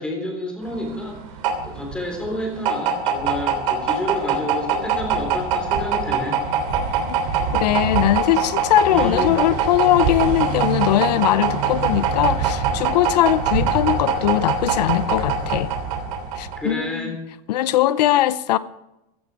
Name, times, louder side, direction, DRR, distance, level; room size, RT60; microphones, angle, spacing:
voice 1, 0.0-1.4 1.6-6.4 8.9-9.3 16.6-17.1, left 1 dB, 5° left, 3.5 m, -29 dB
sound 1, 0.7-16.7, right 6 dB, 55° right, 3.2 m, -23 dB
voice 2, 7.5-15.7 16.4-17.2 17.5-18.6, left 14 dB, 85° left, 0.7 m, -20 dB
16.0 x 13.5 x 4.8 m
supercardioid pair, 175°, 20 cm